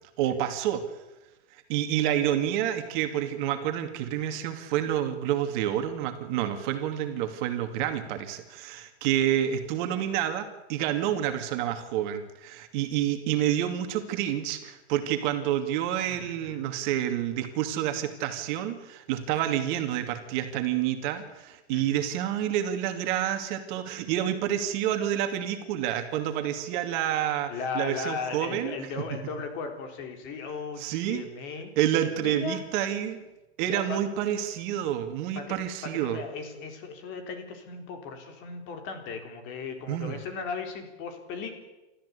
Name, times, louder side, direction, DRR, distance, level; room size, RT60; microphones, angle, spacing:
voice 1, 0.2-0.8 1.7-28.7 30.8-31.2 31.8-33.2 33.6-36.2 39.9-40.2, right 11 dB, 45° right, 7 dB, 2.5 m, -28 dB
voice 2, 16.1-16.6 21.7-22.0 27.5-31.7 32.2-32.6 33.7-34.0 35.4-35.6 35.8-41.5, left 5 dB, 35° left, 6 dB, 3.9 m, -37 dB
29.0 x 14.0 x 8.4 m, 1.0 s
supercardioid pair, 150°, 34 cm